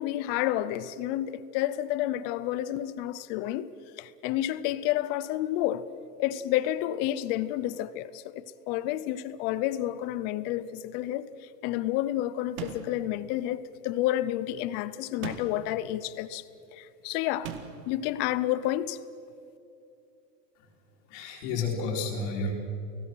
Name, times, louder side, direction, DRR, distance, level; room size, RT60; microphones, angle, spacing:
voice 1, 0.0-3.7 4.0-5.8 6.2-16.4 16.7-17.5 17.9-19.0, left 13 dB, 25° left, 0.4 m, -30 dB
sound 1, 12.6-13.1 15.2-15.8 17.4-17.9, right 9 dB, 60° right, 2.3 m, -39 dB
voice 2, 21.1-22.5, left 3 dB, 45° left, 4.2 m, -31 dB
30.0 x 18.0 x 6.2 m
hypercardioid pair, 140°, 49 cm